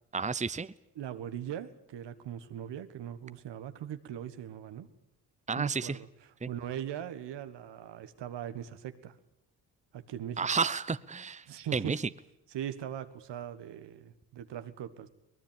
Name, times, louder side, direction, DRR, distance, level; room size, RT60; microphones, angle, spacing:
voice 1, 0.1-0.7 5.5-6.0 6.4-6.5 10.4-11.5 11.7-12.1, right 5 dB, 15° right, 15 dB, 0.9 m, -31 dB
voice 2, 1.0-4.9 5.6-6.0 6.5-9.1 9.9-10.4 11.5-12.0 12.5-15.1, right 10 dB, 75° right, 11 dB, 1.7 m, -40 dB
23.0 x 19.5 x 9.1 m, 0.81 s
supercardioid pair, 50°, 43 cm